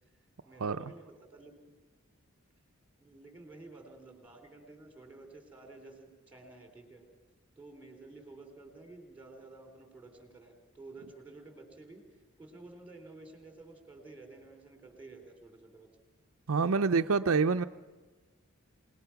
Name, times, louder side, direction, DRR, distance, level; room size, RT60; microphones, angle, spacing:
voice 1, 0.1-1.5 3.0-7.0 7.6-15.9, right 2 dB, 5° right, 4 dB, 3.6 m, -52 dB
voice 2, 16.5-17.6, right 4 dB, 75° right, 8 dB, 0.6 m, -26 dB
27.5 x 19.5 x 5.9 m, 1.2 s
head